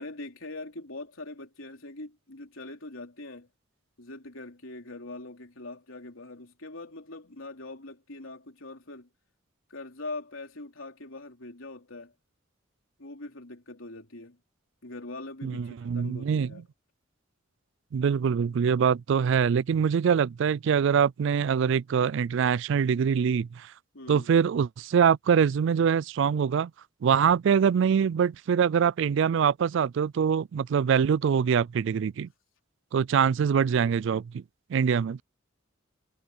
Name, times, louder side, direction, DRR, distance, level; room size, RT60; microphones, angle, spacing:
voice 1, 0.0-3.5 4.0-9.1 9.7-12.1 13.0-14.4 14.8-16.6 23.9-24.3, left 2 dB, 80° left, 3.4 m, -42 dB
voice 2, 15.4-16.5 17.9-23.7 24.1-26.7 27.0-32.3 32.9-34.4 34.7-35.2, right 7 dB, 60° right, 0.3 m, -24 dB
head